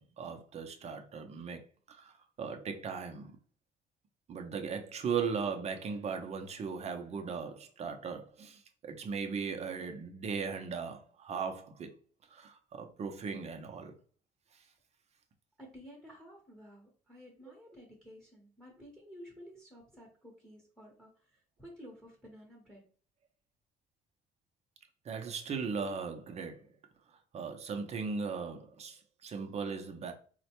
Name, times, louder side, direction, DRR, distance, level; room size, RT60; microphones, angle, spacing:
voice 1, 0.0-2.1 2.4-3.3 4.3-12.0 12.3-13.9 25.0-26.7 27.3-30.1, right 5 dB, 40° right, 0.6 m, -38 dB
voice 2, 15.6-22.8, equal, 5° left, 0.9 m, -53 dB
3.9 x 2.2 x 2.9 m
cardioid pair, 110°, 17 cm